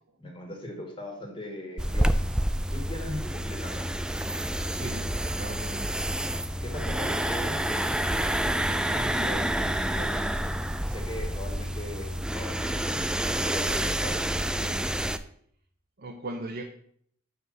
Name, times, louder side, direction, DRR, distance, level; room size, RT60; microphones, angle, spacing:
voice 1, 0.2-2.3 2.7-3.9 6.5-7.6 8.7-10.5 10.9-13.0 13.4-14.2, left 1 dB, 25° left, 1 dB, 2.0 m, -39 dB
sound 1, 1.8-15.2, right 1 dB, 5° right, 0.3 m, -28 dB
voice 2, 4.7-6.0 14.6-15.0 16.0-16.6, right 2 dB, 50° right, 2 dB, 0.8 m, -39 dB
6.0 x 5.5 x 6.2 m, 0.64 s
head